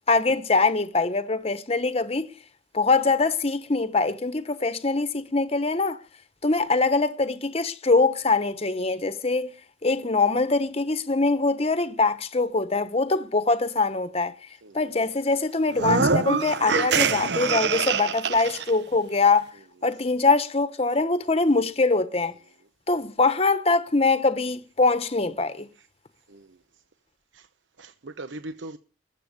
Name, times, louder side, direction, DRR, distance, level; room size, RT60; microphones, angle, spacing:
voice 1, 0.1-2.3 2.7-6.0 6.4-9.5 9.8-14.3 14.7-19.5 19.8-22.3 22.9-25.7, left 3 dB, 30° left, 1.0 m, -23 dB
voice 2, 14.6-14.9 19.8-19.9 26.3-26.6 27.3-27.5 27.8-28.8, right 2 dB, 85° right, 1.0 m, -40 dB
sound 1, 15.7-18.7, right 5 dB, 60° right, 0.7 m, -24 dB
21.5 x 7.7 x 5.2 m
head